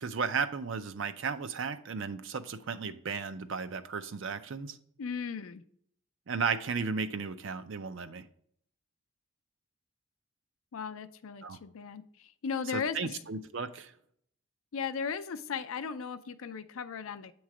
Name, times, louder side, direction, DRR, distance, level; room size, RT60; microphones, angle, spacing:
voice 1, 0.0-4.8 6.3-8.2 11.4-11.6 12.7-13.9, right 5 dB, 60° right, 11 dB, 0.5 m, -34 dB
voice 2, 5.0-5.6 10.7-13.1 14.7-17.3, left 6 dB, 75° left, 11 dB, 0.5 m, -36 dB
8.2 x 3.1 x 4.8 m, 0.66 s
head